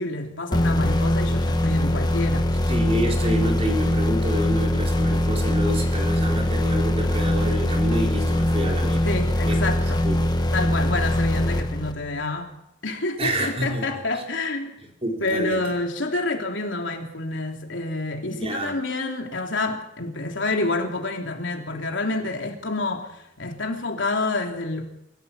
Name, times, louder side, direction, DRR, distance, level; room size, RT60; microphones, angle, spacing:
voice 1, 0.0-2.5 9.0-10.1 10.5-12.5 12.8-14.7 15.2-24.8, left 2 dB, 70° left, 2 dB, 3.4 m, -28 dB
sound 1, 0.5-12.2, left 1 dB, 20° left, 1.5 m, -22 dB
voice 2, 2.7-9.1 9.4-9.7 10.0-10.2 13.2-13.9 14.1-14.2 15.0-15.6 18.3-18.8, equal, 30° right, 1 dB, 4.4 m, -28 dB
25.5 x 14.5 x 7.2 m, 0.83 s
head